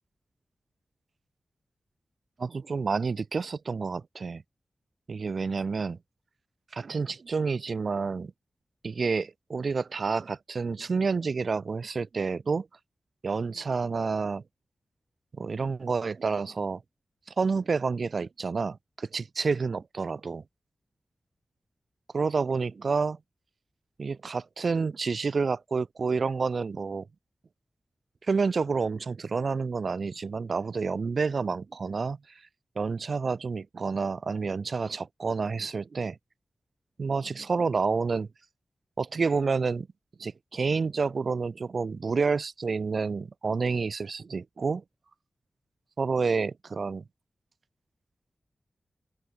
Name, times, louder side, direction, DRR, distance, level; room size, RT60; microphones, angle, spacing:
voice 1, 2.4-4.4 5.1-6.0 6.7-8.3 8.8-12.7 13.2-14.4 15.4-16.8 17.4-20.4 22.1-23.2 24.0-27.0 28.3-32.2 32.7-36.2 37.0-38.3 39.0-39.9 40.2-44.8 46.0-47.0, right 4 dB, 65° right, 5.0 m, -29 dB
open air
cardioid pair, 45°, 0 cm